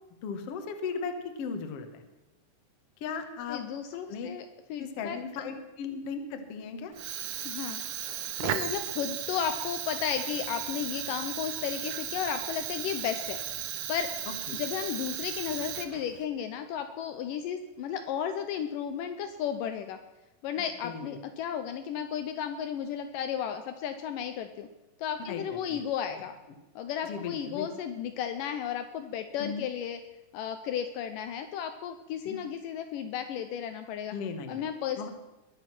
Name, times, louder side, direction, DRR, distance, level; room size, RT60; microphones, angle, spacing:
voice 1, 0.2-2.0 3.0-3.6 4.1-4.3 4.8-6.9 20.8-21.2 25.3-25.8 27.0-27.7 29.4-29.7 32.2-32.5 34.1-34.7 35.0-35.1, left 5 dB, 55° left, 7 dB, 1.8 m, -37 dB
voice 2, 3.5-5.2 7.4-7.8 8.4-13.4 13.9-14.1 14.5-20.0 20.4-24.7 25.0-26.3 26.8-30.0 30.3-34.1 34.5-35.1, left 8 dB, 75° left, 8 dB, 2.2 m, -34 dB
Fire, 6.9-16.3, right 11 dB, 75° right, 1.5 m, -36 dB
21.5 x 7.6 x 6.0 m, 1.0 s
omnidirectional pair, 4.2 m